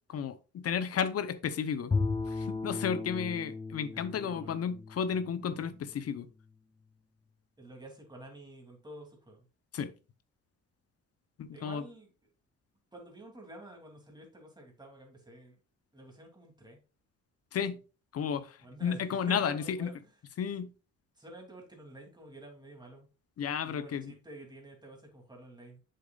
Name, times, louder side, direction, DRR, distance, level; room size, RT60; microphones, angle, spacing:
voice 1, 0.1-1.9 2.3-6.3 9.7-9.9 11.4-11.8 17.5-17.8 18.1-19.9 20.4-20.7 23.4-24.1, left 7 dB, 50° left, 0.7 m, -33 dB
Bowed string instrument, 1.9-6.1, left 4 dB, 15° left, 0.6 m, -36 dB
voice 2, 3.9-4.6 5.5-5.7 7.6-9.5 11.5-12.1 12.9-15.6 15.9-16.8 18.6-19.9 21.2-23.1 23.6-25.8, right 1 dB, 15° right, 2.7 m, -49 dB
7.6 x 6.6 x 2.4 m
cardioid pair, 90°, 30 cm